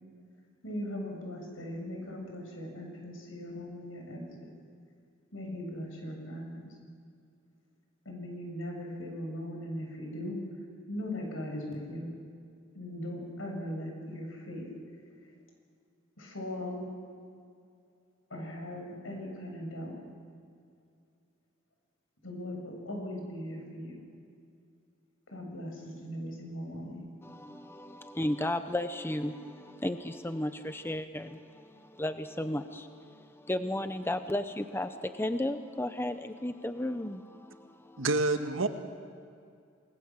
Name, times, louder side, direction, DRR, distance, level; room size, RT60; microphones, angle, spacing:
voice 1, 0.6-4.2 5.3-6.7 8.1-10.4 10.9-12.1 12.7-14.7 16.2-16.9 18.3-20.0 22.2-24.0 25.3-27.1, left 1 dB, 80° left, 2 dB, 7.1 m, -39 dB
voice 2, 27.2-38.0, left 1 dB, 10° left, 9 dB, 0.7 m, -34 dB
voice 3, 38.0-38.7, right 3 dB, 75° right, 6 dB, 1.7 m, -27 dB
28.5 x 20.5 x 7.5 m, 2.3 s
head